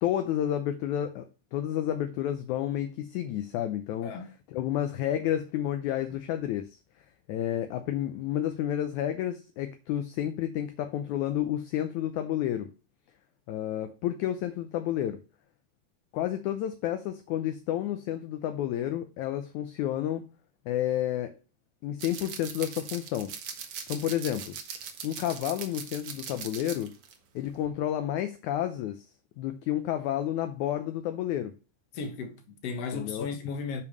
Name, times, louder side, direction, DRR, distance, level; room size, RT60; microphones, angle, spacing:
voice 1, 0.0-1.3 1.5-4.2 4.5-6.7 7.3-12.7 13.5-15.2 16.1-20.3 20.7-21.3 21.8-23.3 23.9-24.6 25.0-26.9 27.4-29.1 29.4-31.5 32.9-33.3, left 11 dB, 75° left, 1.8 m, -30 dB
sound 1, 22.0-27.1 27.5-27.7, right 7 dB, 65° right, 1.4 m, -40 dB
voice 2, 31.9-33.8, left 5 dB, 55° left, 2.0 m, -35 dB
7.2 x 5.6 x 6.6 m
omnidirectional pair, 4.1 m